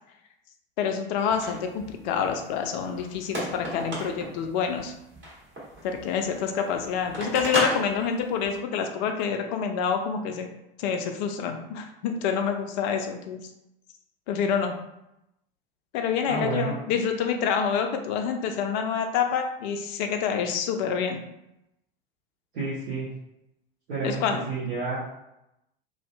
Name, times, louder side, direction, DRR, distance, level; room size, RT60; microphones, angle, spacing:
voice 1, 0.8-4.9 5.8-10.5 10.8-13.5 14.3-14.7 15.9-21.2 24.0-24.4, left 7 dB, 50° left, 5 dB, 0.4 m, -27 dB
sound 1, 1.3-8.6, right 1 dB, 40° right, 1.4 m, -35 dB
voice 2, 16.3-16.7 22.5-23.1 23.9-24.2 24.5-25.0, right 4 dB, 70° right, -10 dB, 0.9 m, -30 dB
2.5 x 2.3 x 2.3 m, 0.87 s
figure-of-eight pair, 75°, 31 cm